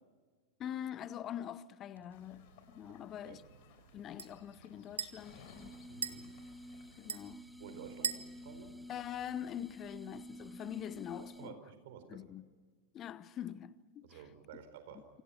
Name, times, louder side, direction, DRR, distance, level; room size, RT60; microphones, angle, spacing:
voice 1, 0.6-3.4 3.9-5.8 7.0-7.5 8.9-11.6 12.1-12.5 12.9-14.2, left 10 dB, 30° left, 0.9 m, -44 dB
sound 1, 2.0-9.8, right 6 dB, 70° right, 1.2 m, -46 dB
sound 2, 2.1-7.2, left 6 dB, 45° left, 4.7 m, -61 dB
voice 2, 2.9-3.4 5.9-6.3 7.6-8.7 11.2-12.3 14.0-15.2, right 7 dB, 55° right, 4.4 m, -52 dB
sound 3, 5.1-11.7, equal, ahead, 1.2 m, -51 dB
28.5 x 25.5 x 5.9 m
figure-of-eight pair, 90°, 0 cm